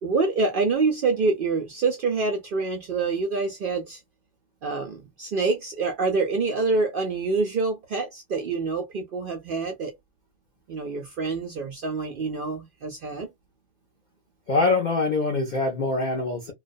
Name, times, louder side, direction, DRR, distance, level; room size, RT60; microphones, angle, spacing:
voice 1, 0.0-4.0 4.6-9.9 10.7-13.3, right 4 dB, 80° right, 0.4 m, -26 dB
voice 2, 14.5-16.5, left 3 dB, 65° left, 0.4 m, -24 dB
2.3 x 2.2 x 2.5 m
omnidirectional pair, 1.5 m